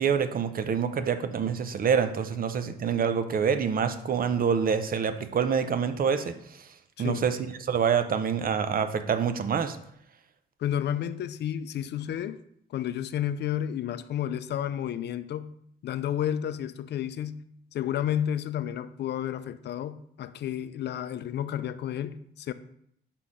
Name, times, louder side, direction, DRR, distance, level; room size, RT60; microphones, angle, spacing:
voice 1, 0.0-6.7 7.0-9.8, right 7 dB, 45° right, 0.6 m, -26 dB
voice 2, 10.6-12.4 12.7-15.5 15.8-17.4 17.7-22.5, left 10 dB, 60° left, 0.4 m, -31 dB
5.7 x 4.1 x 4.9 m
cardioid pair, 90°, 20 cm